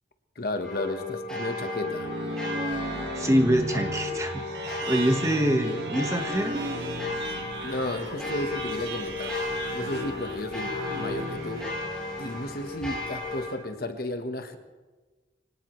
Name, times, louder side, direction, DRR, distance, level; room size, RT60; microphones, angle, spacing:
voice 1, 0.3-2.1 7.6-11.7 12.2-14.6, left 1 dB, 55° left, 7 dB, 1.2 m, -33 dB
sound 1, 0.6-13.5, left 3 dB, 5° left, 6.1 m, -34 dB
sound 2, 1.6-12.4, right 2 dB, 65° right, 1.8 m, -36 dB
voice 2, 3.1-4.4 4.9-6.6, right 1 dB, 15° right, 4 dB, 1.4 m, -24 dB
Walk footsteps, 6.4-13.4, left 1 dB, 80° left, 6.3 m, -51 dB
24.0 x 18.5 x 3.2 m, 1.3 s
head